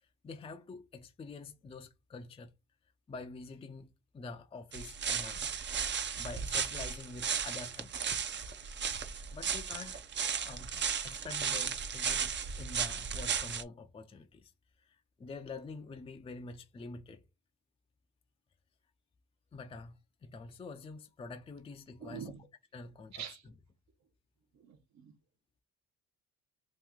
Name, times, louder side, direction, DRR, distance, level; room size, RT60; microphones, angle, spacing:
voice 1, 0.2-2.5 3.1-5.6 5.8-8.2 9.3-10.0 10.4-14.5 14.8-17.2 19.5-22.3 22.7-23.1, left 3 dB, 20° left, 0.4 m, -47 dB
sound 1, 4.7-13.6, right 7 dB, 40° right, 0.5 m, -35 dB
voice 2, 22.0-22.4 23.1-23.5 24.5-25.1, right 7 dB, 65° right, 0.9 m, -45 dB
3.0 x 2.6 x 3.5 m
cardioid pair, 90°, 30 cm